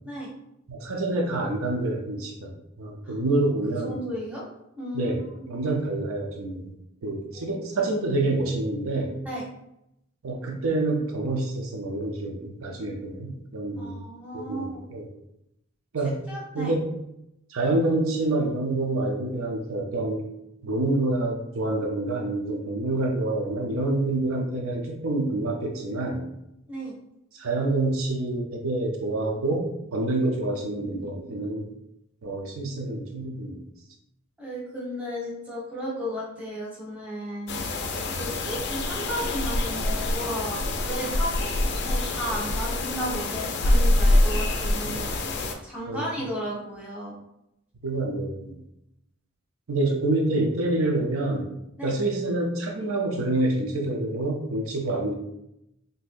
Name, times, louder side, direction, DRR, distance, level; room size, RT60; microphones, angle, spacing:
voice 1, 0.7-4.0 4.9-5.2 5.5-6.7 7.0-9.2 10.2-14.1 14.3-15.0 15.9-16.3 16.5-16.9 17.5-20.3 20.6-26.3 27.3-31.7 32.2-33.6 44.8-45.1 45.9-46.0 47.8-48.5 49.7-51.5 51.8-55.1, right 2 dB, 80° right, 1 dB, 0.6 m, -27 dB
voice 2, 3.8-4.4 4.8-5.1 7.3-7.6 7.8-7.9 9.2-9.5 13.8-14.8 16.3-16.7 26.7-26.9 34.4-37.6 38.2-45.1 45.6-47.1 51.8-51.9, equal, 5° right, -7 dB, 1.0 m, -34 dB
sound 1, 37.5-45.5, left 1 dB, 55° left, 0.4 m, -25 dB
3.9 x 2.7 x 2.5 m, 0.82 s
head